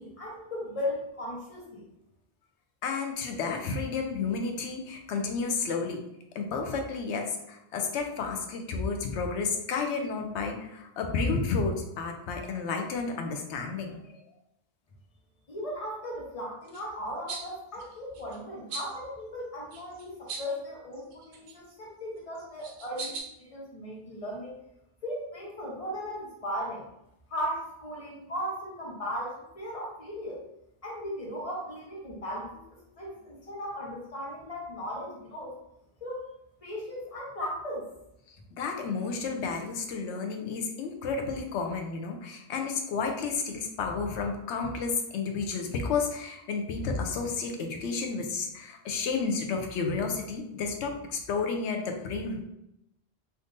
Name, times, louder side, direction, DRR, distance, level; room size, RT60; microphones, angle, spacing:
voice 1, 0.0-1.8 15.5-24.6 25.0-26.8 27.3-30.4 30.8-35.5 36.0-36.3 36.6-37.8, equal, 35° left, -4 dB, 1.0 m, -37 dB
voice 2, 2.8-6.0 6.3-14.2 38.3-52.4, left 4 dB, 80° left, 4 dB, 0.9 m, -31 dB
sound 1, 16.7-16.8 17.3-17.5 17.7-18.4 18.7-19.0 19.7-20.6 20.9-21.7 22.3-23.2, right 4 dB, 65° right, 0.9 m, -39 dB
3.5 x 2.6 x 2.6 m, 0.84 s
omnidirectional pair, 1.2 m